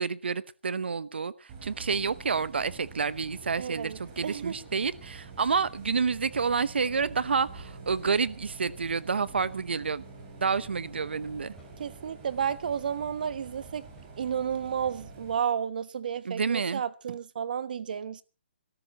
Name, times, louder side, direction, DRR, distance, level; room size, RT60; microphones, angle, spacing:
voice 1, 0.0-10.0 10.4-11.5 16.2-16.8, right 5 dB, 75° right, 0.9 m, -29 dB
Bus, 1.5-15.3, right 4 dB, 25° right, 4.5 m, -47 dB
voice 2, 3.4-4.6 11.8-13.8 14.2-18.2, right 8 dB, 50° right, 1.1 m, -32 dB
sound 1, 6.1-6.4 6.7-6.8 7.6-7.9 9.3-9.7 10.4-10.6 11.6-11.9 12.6-12.9 13.9-14.3, left 3 dB, 5° left, 5.8 m, -59 dB
24.5 x 13.0 x 3.0 m
hypercardioid pair, 160°, 6 cm